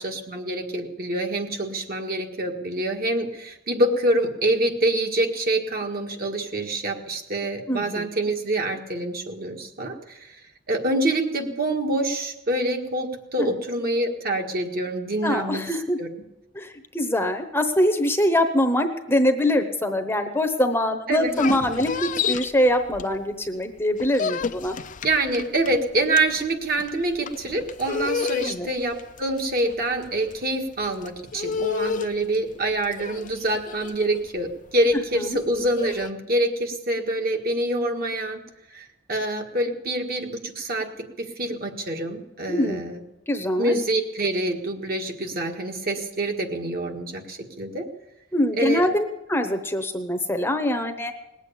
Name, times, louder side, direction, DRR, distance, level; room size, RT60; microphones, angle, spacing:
voice 1, 0.0-10.4 10.7-15.6 16.0-16.1 21.1-21.3 25.0-38.4 38.7-40.9 41.2-43.0 43.6-47.9 48.6-48.8, right 1 dB, 50° right, 3 dB, 1.8 m, -26 dB
voice 2, 7.7-8.1 13.4-13.5 15.2-16.0 16.5-24.8 28.5-28.7 35.1-35.4 42.5-42.8 43.3-43.7 48.3-51.1, left 1 dB, 10° left, 7 dB, 0.9 m, -23 dB
sound 1, 21.1-23.5 23.8-36.1, left 6 dB, 40° left, 0.5 m, -31 dB
19.5 x 8.2 x 8.5 m, 0.94 s
head